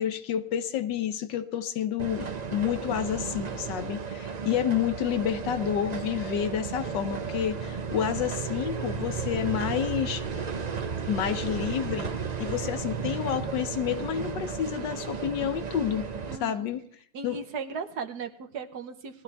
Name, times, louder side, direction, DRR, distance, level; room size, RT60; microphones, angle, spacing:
voice 1, 0.0-10.2 11.1-12.1 12.4-16.1 16.4-16.8 17.2-17.4, left 9 dB, 90° left, 10 dB, 1.6 m, -29 dB
sound 1, 2.0-16.4, right 6 dB, 40° right, 0.6 m, -34 dB
voice 2, 16.3-16.7 17.1-19.2, right 5 dB, 70° right, 7 dB, 1.6 m, -37 dB
19.5 x 13.0 x 3.5 m, 0.63 s
omnidirectional pair, 1.9 m